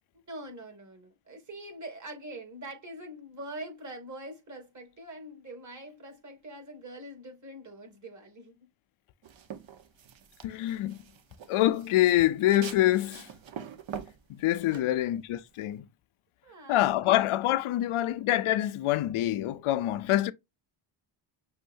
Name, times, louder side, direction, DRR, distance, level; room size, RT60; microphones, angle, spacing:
voice 1, 0.3-8.7 14.7-15.0 16.4-16.9, right 1 dB, 35° right, 2.6 m, -44 dB
sound 1, 9.2-15.8, right 8 dB, 60° right, 1.1 m, -45 dB
voice 2, 10.4-11.0 11.5-13.3 14.3-15.9 16.7-20.3, left 14 dB, 80° left, 0.6 m, -26 dB
6.3 x 2.6 x 2.6 m
cardioid pair, 100°, 50 cm